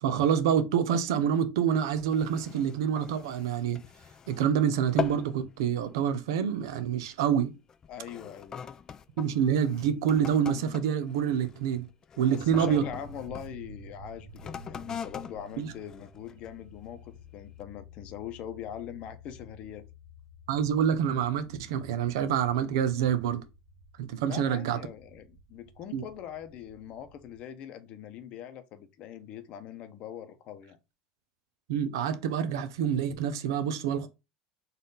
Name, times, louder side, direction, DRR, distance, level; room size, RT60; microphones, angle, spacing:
voice 1, 0.0-3.8 4.3-7.5 9.2-11.9 12.2-12.8 15.6-15.7 20.5-23.4 24.0-24.8 25.9-26.0 31.7-34.1, right 8 dB, 85° right, 0.7 m, -27 dB
sound 1, 1.9-4.5 4.8-5.4 5.7-6.0 6.7-7.0 7.7-13.5 14.3-16.6 17.2-17.3, left 7 dB, 30° left, 0.3 m, -41 dB
voice 2, 7.9-8.6 12.2-19.9 24.3-30.8, left 9 dB, 50° left, 0.8 m, -42 dB
sound 2, 12.4-27.4, left 1 dB, 25° right, 1.6 m, -51 dB
4.1 x 2.6 x 3.9 m
supercardioid pair, 115°, 2 cm